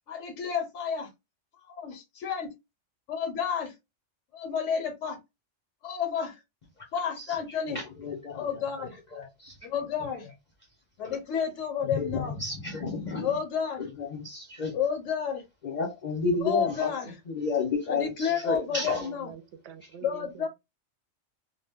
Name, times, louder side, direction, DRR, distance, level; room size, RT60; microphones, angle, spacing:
voice 1, 0.1-1.1 1.7-2.5 3.1-3.7 4.3-5.2 5.8-6.4 6.9-7.8 8.3-9.0 9.6-10.3 11.0-12.4 13.2-13.9 14.7-15.4 16.4-17.2 17.9-19.3 20.0-20.5, left 7 dB, 75° left, 0.9 m, -31 dB
voice 2, 7.7-8.4 8.8-8.9 9.1-9.7 11.0-11.2 11.8-13.4 13.8-14.8 15.6-16.9 17.3-19.1 19.8-19.9, left 4 dB, 45° left, 0.7 m, -32 dB
voice 3, 17.9-20.5, right 8 dB, 70° right, 0.9 m, -47 dB
2.2 x 2.2 x 3.4 m
omnidirectional pair, 1.3 m